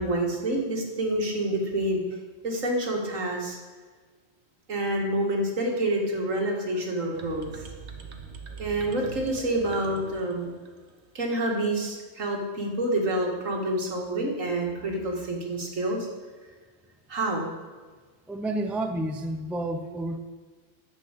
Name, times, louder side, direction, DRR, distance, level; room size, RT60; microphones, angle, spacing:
voice 1, 0.0-2.0 2.4-3.6 4.7-7.7 8.6-10.5 11.1-16.1 17.1-17.5, right 1 dB, 80° right, 1 dB, 2.3 m, -28 dB
sound 1, 7.1-11.1, right 5 dB, 60° right, 1.4 m, -42 dB
voice 2, 18.3-20.2, right 1 dB, ahead, 6 dB, 0.5 m, -30 dB
10.5 x 6.3 x 8.1 m, 1.4 s
omnidirectional pair, 1.3 m